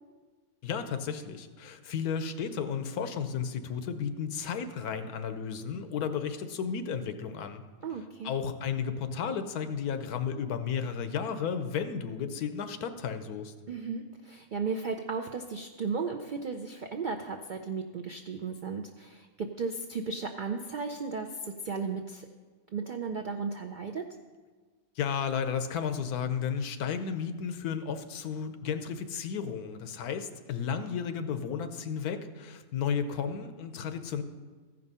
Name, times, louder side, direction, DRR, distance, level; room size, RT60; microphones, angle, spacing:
voice 1, 0.6-7.6 8.2-13.5 25.0-34.2, left 7 dB, 85° left, 9 dB, 1.2 m, -33 dB
voice 2, 7.8-8.3 13.7-22.3 22.7-24.0, right 5 dB, 70° right, 3 dB, 0.4 m, -35 dB
14.5 x 5.4 x 5.5 m, 1.4 s
omnidirectional pair, 1.6 m